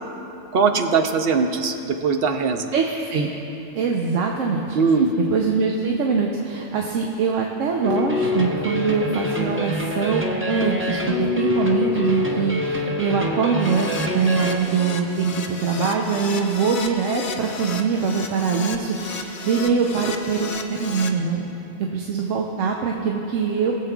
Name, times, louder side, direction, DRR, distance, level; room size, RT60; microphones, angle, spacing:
voice 1, 0.5-2.7 4.7-5.1, right 5 dB, 60° right, 6 dB, 0.7 m, -20 dB
voice 2, 2.7-3.3 3.8-4.8 5.3-21.5 21.9-23.8, right 5 dB, 85° right, 0 dB, 1.0 m, -23 dB
sound 1, 7.8-14.6, left 2 dB, 15° right, 0.5 m, -25 dB
Keyboard (musical), 13.6-21.1, left 4 dB, 50° left, 0.7 m, -33 dB
20.5 x 7.5 x 2.3 m, 2.9 s
omnidirectional pair, 1.3 m